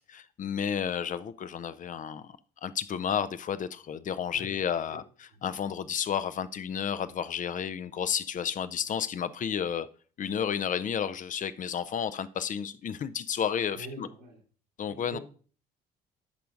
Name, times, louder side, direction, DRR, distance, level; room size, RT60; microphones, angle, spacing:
voice 1, 0.0-2.3 2.6-9.9 10.2-14.1 14.8-15.2, left 8 dB, 40° left, 0.6 m, -32 dB
voice 2, 13.7-14.4 14.9-15.2, right 3 dB, 85° right, 2.7 m, -44 dB
14.5 x 5.7 x 2.5 m
figure-of-eight pair, 50°, 21 cm